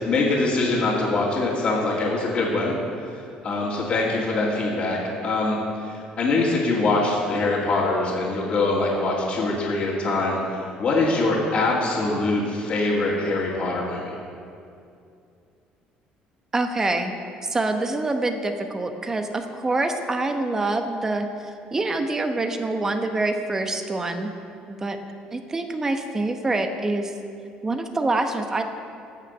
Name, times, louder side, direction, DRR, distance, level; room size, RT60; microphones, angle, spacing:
voice 1, 0.0-2.8 3.1-5.0 5.2-14.1, left 2 dB, 40° left, -7 dB, 2.5 m, -23 dB
voice 2, 16.5-17.1 17.5-21.3 21.7-24.3 24.7-25.0 25.3-27.1 27.6-28.6, right 2 dB, 15° right, 6 dB, 1.0 m, -25 dB
16.5 x 6.4 x 8.1 m, 2.5 s
cardioid pair, 130°, 3 cm